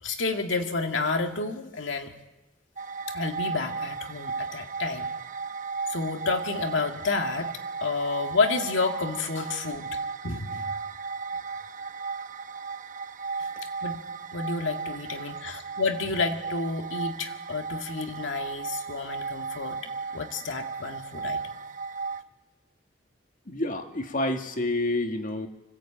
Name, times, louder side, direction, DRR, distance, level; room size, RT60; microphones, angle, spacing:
voice 1, 0.0-2.1 3.1-5.1 5.9-7.5 7.8-10.7 13.8-14.0 14.3-19.8 20.1-21.4, left 4 dB, 70° left, 5 dB, 2.2 m, -30 dB
sound 1, 2.8-22.2, right 4 dB, 45° right, 0.9 m, -35 dB
voice 2, 23.5-25.5, left 2 dB, 45° left, 5 dB, 2.0 m, -28 dB
25.0 x 17.5 x 8.8 m, 1.0 s
head